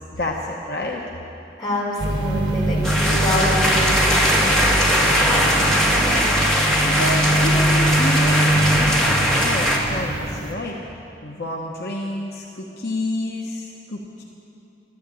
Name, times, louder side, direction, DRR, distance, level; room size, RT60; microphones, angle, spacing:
voice 1, 0.2-1.0 6.8-10.8 11.2-14.2, left 1 dB, 60° left, -1 dB, 1.1 m, -29 dB
voice 2, 1.6-6.2, left 1 dB, 25° left, -5 dB, 4.2 m, -27 dB
sound 1, 2.0-10.5, right 1 dB, 75° right, 1.7 m, -23 dB
sound 2, 2.8-9.8, equal, 5° left, 1.9 m, -20 dB
13.0 x 13.0 x 8.6 m, 2.9 s
head